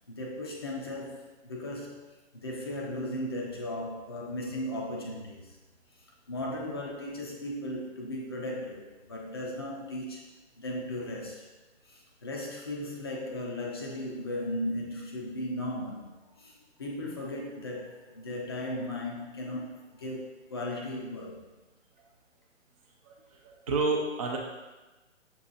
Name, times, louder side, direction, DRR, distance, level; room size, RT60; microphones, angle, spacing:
voice 1, 0.1-5.6 6.3-10.2 10.6-11.5 11.9-21.4, left 1 dB, 20° left, -2 dB, 0.4 m, -36 dB
voice 2, 23.0-24.4, right 3 dB, 30° right, -1 dB, 0.5 m, -30 dB
7.0 x 2.7 x 2.5 m, 1.1 s
figure-of-eight pair, 135°, 37 cm